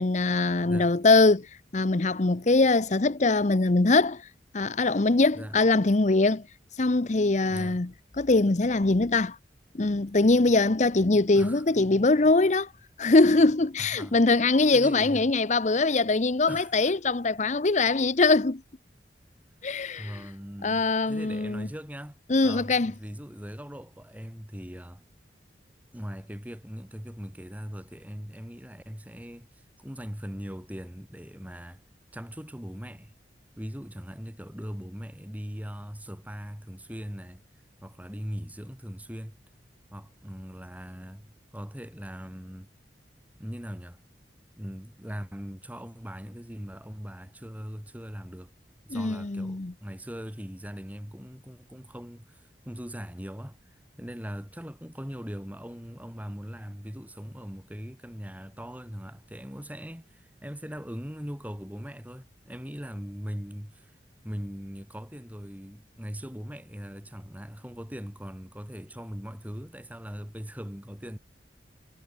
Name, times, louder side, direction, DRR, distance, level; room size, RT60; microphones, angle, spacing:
voice 1, 0.0-1.5 1.7-4.2 4.5-6.4 6.8-7.9 8.2-9.4 9.7-12.7 13.0-18.6 19.6-20.2 20.6-21.7 22.3-22.9 48.9-49.7, left 3 dB, 40° left, 0.8 m, -22 dB
voice 2, 7.5-7.8 11.3-11.6 13.8-14.2 14.7-15.3 16.5-16.9 19.9-22.2 22.4-25.0 25.9-31.8 32.1-33.2 33.6-37.4 37.8-39.4 39.9-41.3 41.5-42.7 43.4-44.0 44.6-48.5 48.8-53.6 54.0-63.9 64.2-71.2, equal, 10° right, 3.1 m, -40 dB
head